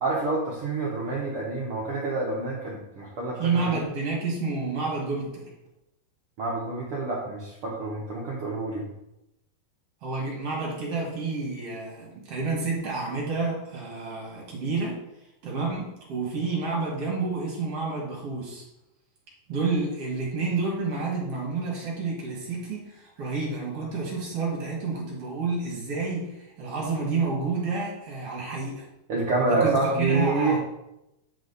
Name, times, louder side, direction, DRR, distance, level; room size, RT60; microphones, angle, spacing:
voice 1, 0.0-3.8 6.4-8.9 29.1-30.6, right 3 dB, 90° right, -4 dB, 1.2 m, -27 dB
voice 2, 3.4-5.5 10.0-15.0 15.4-18.6 19.5-28.9 29.5-30.6, right 4 dB, 50° right, -3 dB, 2.3 m, -29 dB
8.6 x 4.9 x 4.0 m, 0.89 s
omnidirectional pair, 4.1 m